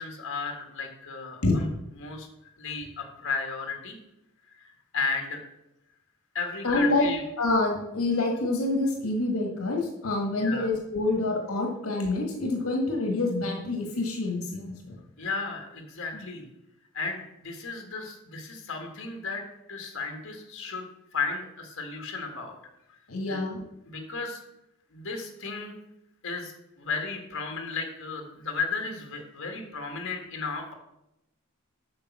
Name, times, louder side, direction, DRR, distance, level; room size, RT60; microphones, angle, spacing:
voice 1, 0.0-1.6 2.0-2.3 2.6-4.0 4.6-4.7 4.9-5.4 6.3-7.2 10.4-10.7 15.2-16.4 16.9-19.4 19.7-20.9 21.1-22.5 22.9-23.0 23.3-23.4 23.9-24.4 24.9-25.7 26.2-30.7, left 4 dB, 65° left, 3 dB, 1.8 m, -34 dB
voice 2, 6.6-7.1 7.4-15.0 16.1-16.3 23.1-23.6, left 2 dB, 85° left, 1 dB, 1.6 m, -27 dB
8.6 x 6.1 x 6.0 m, 0.89 s
head